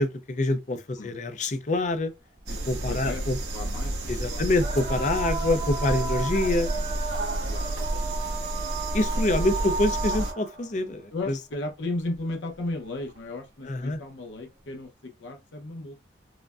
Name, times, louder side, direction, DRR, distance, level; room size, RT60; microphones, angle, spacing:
voice 1, 0.0-2.1 2.5-3.4 4.1-6.7 7.9-8.2 8.9-11.4 13.6-14.0, left 2 dB, 40° left, 0.5 m, -26 dB
sound 1, 2.4-2.5 4.5-10.7 12.1-12.2 13.1-13.2, right 4 dB, 50° right, 1.2 m, -34 dB
sound 2, 2.5-10.3, right 1 dB, 80° right, 1.4 m, -30 dB
voice 2, 2.9-3.2 3.5-4.4 7.5-7.7 11.1-16.1, left 2 dB, 85° left, 0.7 m, -35 dB
4.8 x 2.1 x 2.4 m
head